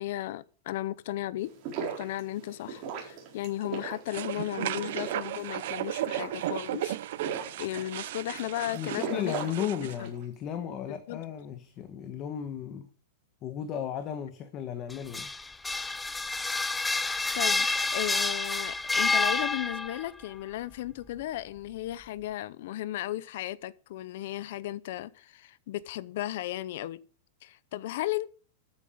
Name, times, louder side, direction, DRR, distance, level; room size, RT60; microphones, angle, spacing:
voice 1, 0.0-1.5 2.0-7.0 7.6-9.5 10.0-10.1 10.9-11.2 17.3-17.7 17.9-27.0 27.4-28.3, left 14 dB, 50° left, 0.6 m, -35 dB
sound 1, 1.4-10.2, right 6 dB, 30° right, 4.3 m, -39 dB
sound 2, 4.1-10.0, right 14 dB, 55° right, 0.7 m, -35 dB
voice 2, 8.7-12.9 13.4-15.3, left 9 dB, 25° left, 1.2 m, -35 dB
sound 3, 14.9-20.1, left 3 dB, 5° left, 0.5 m, -28 dB
13.5 x 9.1 x 5.1 m
supercardioid pair, 175°, 0 cm